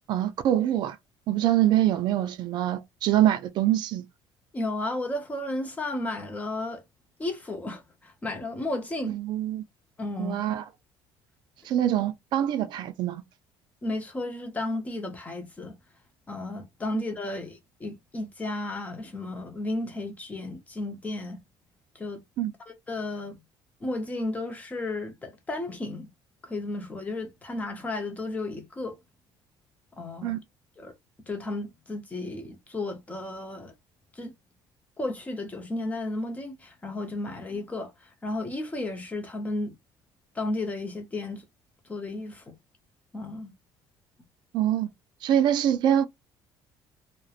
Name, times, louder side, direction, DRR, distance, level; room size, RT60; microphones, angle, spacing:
voice 1, 0.1-1.0 1.3-4.0 9.0-9.6 10.2-10.6 11.6-13.2 16.9-17.0 22.4-22.5 30.2-30.4 44.5-44.9 45.2-46.1, right 11 dB, 60° right, 0.3 m, -24 dB
voice 2, 4.5-6.8 7.2-9.2 10.0-10.5 13.8-15.8 16.3-21.4 21.9-22.2 22.7-23.4 23.8-26.1 26.4-29.0 29.9-30.4 30.8-30.9 31.3-33.7 34.1-34.3 35.0-39.7 40.3-41.4 41.9-42.5 43.1-43.5, left 2 dB, 15° left, 0.6 m, -33 dB
2.8 x 2.0 x 2.3 m
cardioid pair, 155°, 9 cm